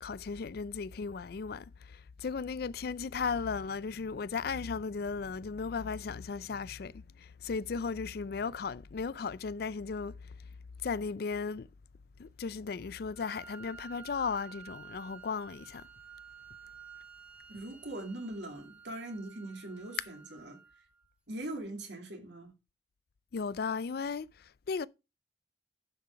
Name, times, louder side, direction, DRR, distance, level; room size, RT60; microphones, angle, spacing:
voice 1, 0.0-10.4 10.8-11.7 12.2-15.8 23.3-24.9, left 5 dB, 60° left, 0.4 m, -36 dB
Wind instrument woodwind instrument, 13.1-21.1, right 6 dB, 10° right, 2.1 m, -52 dB
voice 2, 17.5-20.6 21.3-22.5, right 1 dB, 80° right, 2.6 m, -41 dB
10.5 x 5.7 x 4.7 m
head